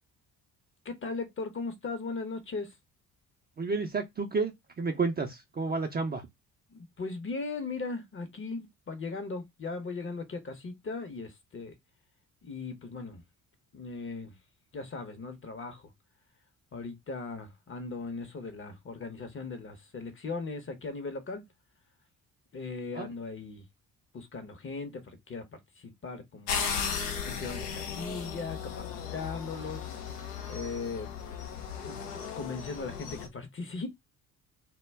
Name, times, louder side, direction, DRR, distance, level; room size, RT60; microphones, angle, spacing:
voice 1, 0.8-2.7 6.7-11.7 12.4-13.2 13.7-14.4 14.7-15.9 16.7-21.4 22.5-23.6 24.1-26.7 27.3-29.8 30.5-31.1 31.8-33.9, left 4 dB, 25° left, 0.7 m, -38 dB
voice 2, 3.6-6.3 22.9-23.1, right 4 dB, 20° right, 0.5 m, -31 dB
sound 1, 26.5-33.3, left 6 dB, 85° left, 0.7 m, -36 dB
2.2 x 2.1 x 3.3 m
hypercardioid pair, 50°, 46 cm